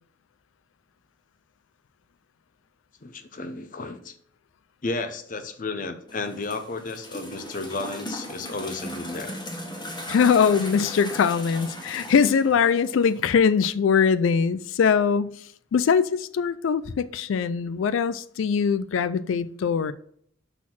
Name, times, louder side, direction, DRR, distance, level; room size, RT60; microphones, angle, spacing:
voice 1, 3.0-4.1 4.8-9.4, left 3 dB, 40° left, 0.7 m, -33 dB
sound 1, 6.1-13.2, left 1 dB, 25° left, 1.5 m, -38 dB
voice 2, 10.1-15.4 15.7-19.9, left 6 dB, 80° left, 0.4 m, -22 dB
5.8 x 4.2 x 5.9 m
head